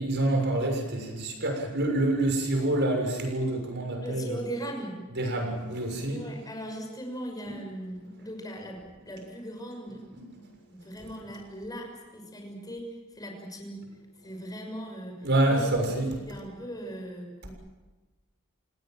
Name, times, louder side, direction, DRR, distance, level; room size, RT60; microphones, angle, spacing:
voice 1, 0.0-4.4 5.1-6.2 7.5-7.6 10.1-10.3 15.2-16.2, right 1 dB, 55° right, 2 dB, 6.8 m, -27 dB
voice 2, 4.0-5.0 6.1-10.0 10.3-13.9 14.2-15.7 15.9-17.5, right 1 dB, 20° left, 2 dB, 6.2 m, -39 dB
29.5 x 18.5 x 7.7 m, 1.2 s
head